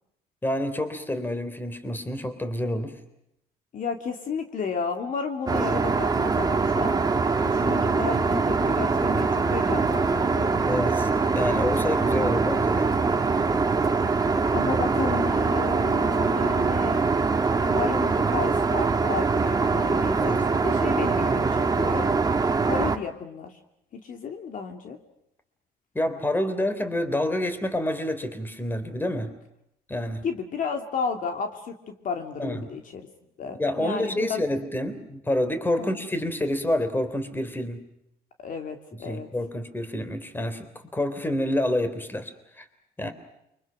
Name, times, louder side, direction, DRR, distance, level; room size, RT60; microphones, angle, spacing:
voice 1, 0.4-3.0 10.7-12.9 20.1-20.4 26.0-29.3 29.9-30.2 32.4-32.6 33.6-37.8 39.1-42.3 42.6-42.7 43.0-43.1, left 1 dB, 10° left, 10 dB, 3.4 m, -28 dB
voice 2, 3.7-7.0 7.4-10.5 14.5-17.0 17.6-22.1 22.6-23.6 23.9-25.0 30.2-33.1 33.4-34.4 35.8-36.0 38.4-39.3, left 5 dB, 50° left, 4 dB, 2.6 m, -33 dB
Aircraft, 5.5-23.0, right 4 dB, 20° right, 1.7 m, -23 dB
29.0 x 24.5 x 6.3 m, 0.80 s
cardioid pair, 110°, 17 cm